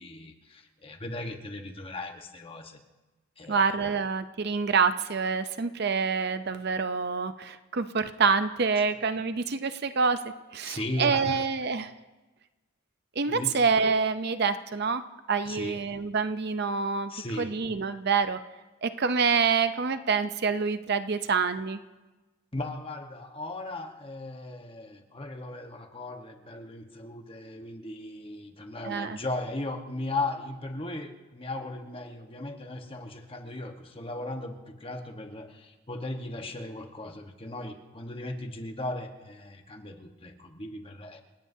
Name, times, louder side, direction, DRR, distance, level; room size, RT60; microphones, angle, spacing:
voice 1, 0.0-2.8 3.4-3.6 10.6-11.4 13.2-13.6 15.4-15.8 17.1-17.5 22.5-41.2, left 2 dB, 25° left, 4 dB, 1.2 m, -37 dB
voice 2, 3.5-10.2 10.5-11.9 13.2-15.0 15.3-17.1 17.4-18.4 18.8-21.8 28.8-29.2, right 5 dB, 55° right, 10 dB, 0.6 m, -27 dB
28.5 x 17.0 x 2.8 m, 1.2 s
head